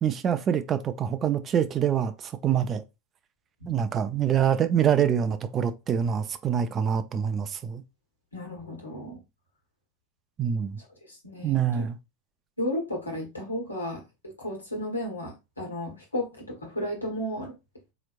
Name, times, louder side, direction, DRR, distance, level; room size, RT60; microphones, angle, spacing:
voice 1, 0.0-2.8 3.7-7.8 10.4-10.8 11.4-12.0, right 8 dB, 30° right, 0.4 m, -25 dB
voice 2, 8.3-9.2 11.1-11.9 12.6-14.0 14.4-17.5, left 1 dB, 85° left, 1.4 m, -33 dB
4.1 x 3.0 x 2.4 m
figure-of-eight pair, 85°, 0 cm